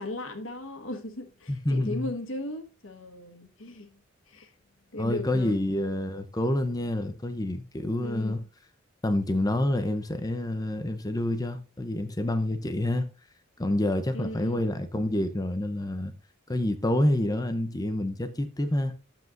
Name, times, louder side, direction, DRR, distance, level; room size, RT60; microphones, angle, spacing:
voice 1, 0.0-4.0 4.3-4.5 4.9-5.7 8.0-8.4 14.1-14.6, left 1 dB, 80° left, 1.6 m, -37 dB
voice 2, 1.5-2.1 5.0-8.4 9.0-13.1 13.6-16.1 16.5-18.9, left 1 dB, 20° left, 0.7 m, -28 dB
12.0 x 7.7 x 2.6 m
head